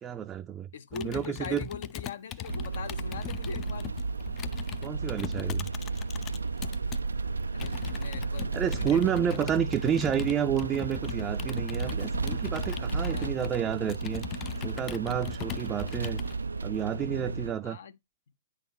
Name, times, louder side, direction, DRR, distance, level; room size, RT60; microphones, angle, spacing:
voice 1, 0.0-1.7 4.8-5.7 8.5-14.3 14.6-16.2 16.6-17.8, right 9 dB, 20° right, 0.5 m, -30 dB
voice 2, 0.7-3.9 7.5-9.5 12.9-13.4 17.6-17.9, left 6 dB, 65° left, 0.8 m, -42 dB
Computer keyboard, 0.9-7.0 7.6-16.4, left 11 dB, 30° left, 0.5 m, -40 dB
sound 1, 2.5-17.5, right 4 dB, 85° right, 0.4 m, -33 dB
9.6 x 4.2 x 3.9 m
hypercardioid pair, 120°, 0 cm